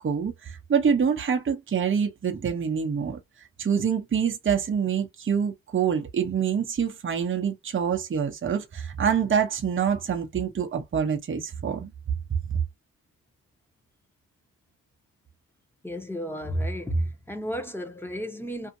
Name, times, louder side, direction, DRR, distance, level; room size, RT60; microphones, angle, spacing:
voice 1, 0.0-3.2 3.6-11.9 12.5-12.6, right 7 dB, 35° right, 0.7 m, -26 dB
voice 2, 15.8-18.7, right 1 dB, 5° left, 0.9 m, -31 dB
2.7 x 2.4 x 2.6 m
cardioid pair, 80°, 36 cm